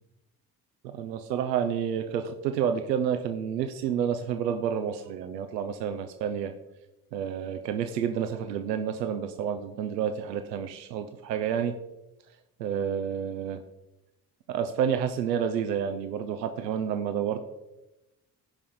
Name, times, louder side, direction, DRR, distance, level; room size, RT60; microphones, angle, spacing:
voice 1, 0.8-6.5 7.1-11.7 12.6-13.6 14.5-17.4, right 8 dB, 90° right, 8 dB, 0.6 m, -29 dB
16.0 x 5.4 x 3.7 m, 0.97 s
hypercardioid pair, 50°, 49 cm